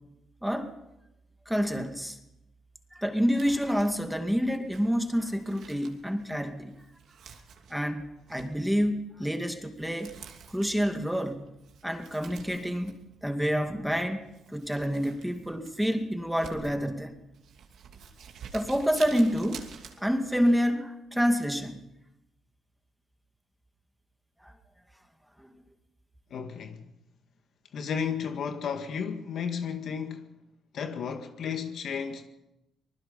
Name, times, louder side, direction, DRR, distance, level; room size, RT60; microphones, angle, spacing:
voice 1, 0.4-0.7 1.5-2.2 2.9-6.7 7.7-10.1 10.5-11.5 11.8-14.2 14.5-17.2 18.5-19.7 20.0-21.9 24.4-24.5 25.4-25.5, equal, ahead, 2.3 m, -28 dB
Crumpling crinkling, 3.2-20.6, right 7 dB, 70° right, 2.7 m, -50 dB
voice 2, 26.3-26.8 27.7-30.3 30.7-32.3, left 6 dB, 65° left, 2.0 m, -33 dB
25.0 x 20.0 x 5.5 m
cardioid pair, 90°, 0 cm